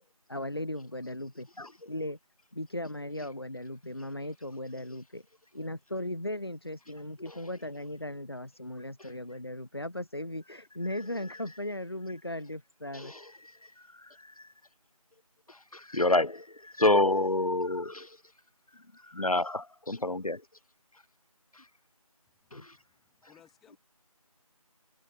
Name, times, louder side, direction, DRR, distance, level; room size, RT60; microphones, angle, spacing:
voice 1, 0.3-1.5 1.8-2.2 2.5-5.2 5.5-13.1, left 1 dB, 40° left, 4.9 m, -37 dB
voice 2, 15.9-16.4 16.8-18.1 19.1-20.4 22.5-22.6, left 2 dB, 70° left, 1.2 m, -26 dB
voice 3, 22.3-23.8, left 10 dB, ahead, 4.5 m, -63 dB
figure-of-eight pair, 180°, 19 cm